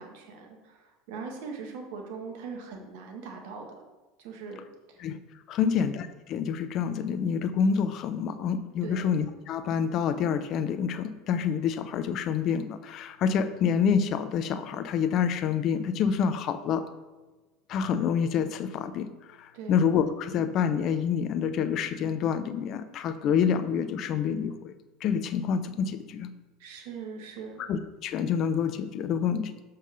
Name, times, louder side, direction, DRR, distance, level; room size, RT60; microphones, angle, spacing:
voice 1, 0.0-3.8 4.2-4.6 4.9-5.0 5.6-5.8 8.8-9.1 19.5-19.8 26.6-27.7, right 4 dB, 65° right, 2 dB, 1.7 m, -41 dB
voice 2, 5.5-16.9 17.7-19.1 19.4-24.7 25.0-26.3 27.6-29.5, left 7 dB, 50° left, 11 dB, 0.7 m, -27 dB
7.3 x 5.7 x 5.0 m, 1.2 s
hypercardioid pair, 75°, 0 cm